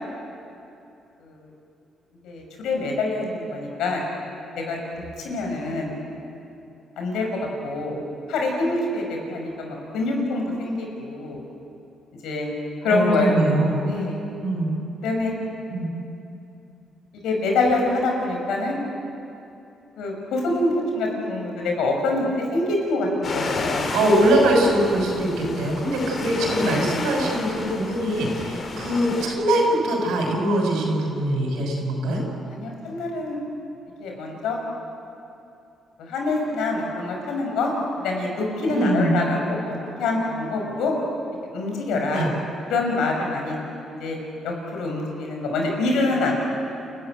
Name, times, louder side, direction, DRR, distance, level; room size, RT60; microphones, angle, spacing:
voice 1, 2.2-4.0 4.6-5.9 7.0-7.3 7.6-8.0 8.3-11.4 12.2-12.5 12.8-13.3 13.8-14.2 15.0-15.3 17.2-18.8 20.0-23.9 32.5-33.4 34.0-34.6 36.0-37.7 38.0-40.9 41.5-42.3 42.7-43.6 44.0-44.2 44.4-46.3, left 2 dB, 85° left, 1 dB, 6.0 m, -25 dB
voice 2, 12.8-13.8 14.4-14.7 15.7-15.9 23.9-32.2 38.7-39.1 42.1-42.3, right 1 dB, 90° right, 0 dB, 6.3 m, -22 dB
sound 1, 23.2-29.2, left 3 dB, 50° left, 3.6 m, -31 dB
29.0 x 14.5 x 9.2 m, 2.8 s
cardioid pair, 90°, 0 cm